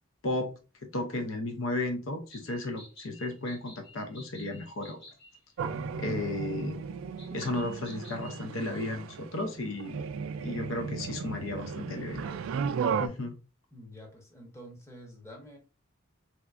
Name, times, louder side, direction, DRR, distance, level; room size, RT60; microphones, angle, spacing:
voice 1, 0.2-0.5 0.9-5.0 6.0-6.8 7.3-10.0 10.4-12.2 13.0-13.3, left 2 dB, 80° left, 0.6 m, -34 dB
sound 1, 2.3-5.4 7.2-8.4, equal, 55° left, 1.6 m, -52 dB
sound 2, 5.6-13.1, right 6 dB, 80° right, 0.3 m, -35 dB
voice 2, 13.7-15.6, equal, 15° left, 0.9 m, -48 dB
3.4 x 2.9 x 2.3 m
head